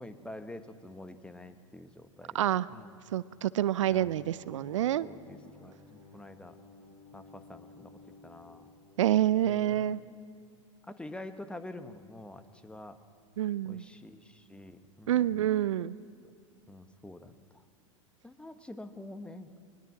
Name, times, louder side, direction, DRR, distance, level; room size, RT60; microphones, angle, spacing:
voice 1, 0.0-2.4 2.7-3.0 3.9-4.2 4.5-4.8 5.0-6.6 7.1-8.7 9.5-9.9 10.9-13.0 13.6-15.4 16.2-16.3 16.7-17.6 18.2-19.5, left 1 dB, 5° left, 11 dB, 1.4 m, -47 dB
voice 2, 2.3-2.7 3.1-5.1 9.0-10.0 13.4-13.8 15.1-15.9, right 12 dB, 70° right, 18 dB, 0.5 m, -27 dB
sound 1, 3.7-9.9, left 3 dB, 65° left, 4.5 m, -55 dB
21.5 x 20.0 x 7.5 m, 2.4 s
figure-of-eight pair, 90°, 17 cm